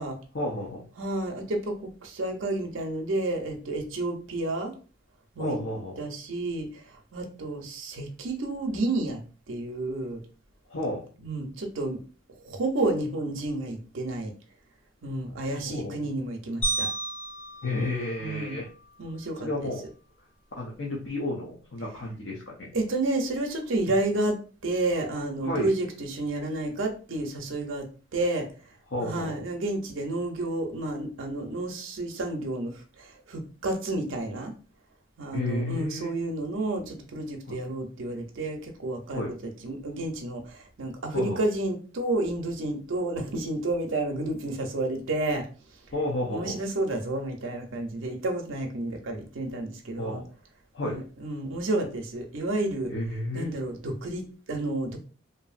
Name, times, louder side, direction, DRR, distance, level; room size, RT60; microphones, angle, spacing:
voice 1, 0.3-0.9 5.4-6.0 10.7-11.0 15.6-16.0 17.6-18.7 19.4-19.8 20.6-22.7 25.4-25.7 28.9-29.4 35.3-36.1 39.1-39.3 41.1-41.4 45.9-46.6 50.0-50.2 50.7-51.0 52.9-53.5, left 1 dB, 55° left, -3 dB, 0.6 m, -31 dB
voice 2, 1.0-4.7 5.4-5.6 6.0-6.8 7.1-9.2 9.5-10.2 11.2-12.0 12.4-14.3 15.0-16.9 18.2-18.6 19.0-19.7 22.7-24.4 24.6-27.8 28.1-28.5 29.0-34.5 35.2-39.2 39.6-45.5 46.3-50.2 50.8-52.9 53.3-55.0, right 2 dB, 65° right, 3 dB, 0.6 m, -30 dB
sound 1, 16.6-19.0, right 2 dB, 30° left, 1.0 m, -33 dB
2.7 x 2.6 x 2.4 m, 0.37 s
head